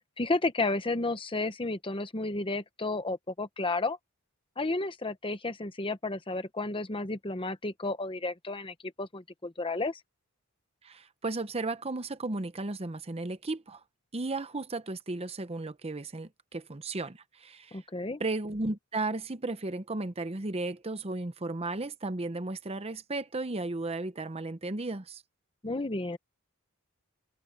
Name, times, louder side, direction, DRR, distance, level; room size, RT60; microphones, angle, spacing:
voice 1, 0.2-4.0 4.6-10.0 17.7-18.2 25.6-26.2, left 2 dB, 25° left, 1.0 m, -32 dB
voice 2, 10.8-13.8 14.1-17.8 18.2-25.2, right 2 dB, 30° right, 0.8 m, -34 dB
head